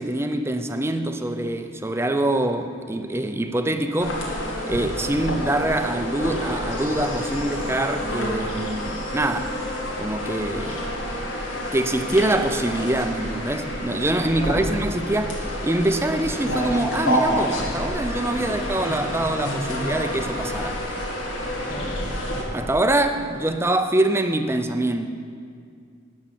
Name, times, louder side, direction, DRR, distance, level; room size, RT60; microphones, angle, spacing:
voice 1, 0.0-4.3 4.7-9.5 10.0-10.9 11.7-20.8 22.5-25.1, right 1 dB, 15° right, 7 dB, 0.5 m, -24 dB
sound 1, 4.0-22.4, equal, 80° left, 2.3 m, -29 dB
voice 2, 14.3-14.7 21.7-22.0 23.4-23.7, left 1 dB, 25° left, 0 dB, 1.5 m, -37 dB
12.5 x 6.4 x 9.1 m, 2.3 s
head